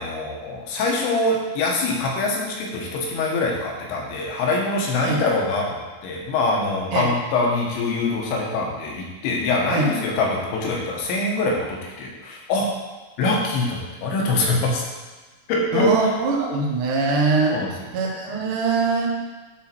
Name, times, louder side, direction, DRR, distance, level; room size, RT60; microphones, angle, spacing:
voice 1, 0.0-12.7 13.2-14.8 15.5-15.9 17.5-17.7, left 2 dB, 75° left, -1 dB, 3.3 m, -24 dB
voice 2, 15.7-17.6 17.9-19.1, right 3 dB, 85° right, -2 dB, 1.8 m, -22 dB
11.0 x 4.0 x 4.4 m, 1.3 s
omnidirectional pair, 5.6 m